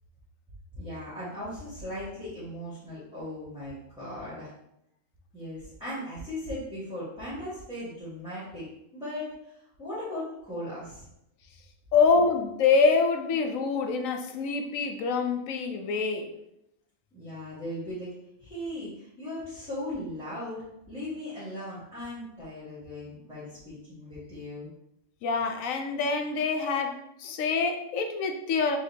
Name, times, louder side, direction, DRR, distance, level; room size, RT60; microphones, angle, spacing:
voice 1, 0.8-4.5 5.3-11.0 17.1-18.1 18.4-24.7, left 1 dB, 5° right, -10 dB, 1.5 m, -38 dB
voice 2, 11.9-16.3 25.2-28.8, left 4 dB, 85° left, 5 dB, 1.0 m, -25 dB
5.4 x 3.5 x 2.8 m, 0.80 s
omnidirectional pair, 1.4 m